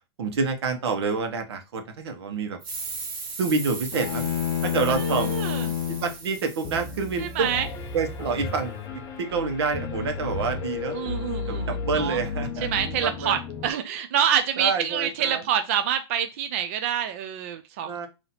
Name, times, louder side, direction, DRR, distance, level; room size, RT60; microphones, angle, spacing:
voice 1, 0.2-2.6 3.4-4.3 4.6-5.4 5.9-7.5 7.9-11.0 11.5-12.7 13.0-13.4 14.6-15.4 17.8-18.1, right 4 dB, 80° right, 6 dB, 1.1 m, -28 dB
sound 1, 2.6-7.9, right 4 dB, 50° right, 1.5 m, -38 dB
sound 2, 3.9-6.2, left 11 dB, 65° left, 0.5 m, -28 dB
voice 2, 4.9-5.7 7.2-7.7 10.9-12.2 12.6-18.1, right 9 dB, 30° right, 8 dB, 0.3 m, -27 dB
Piano, 6.6-13.7, left 4 dB, 20° left, 0.6 m, -33 dB
5.8 x 2.8 x 2.7 m, 0.28 s
supercardioid pair, 180°, 13 cm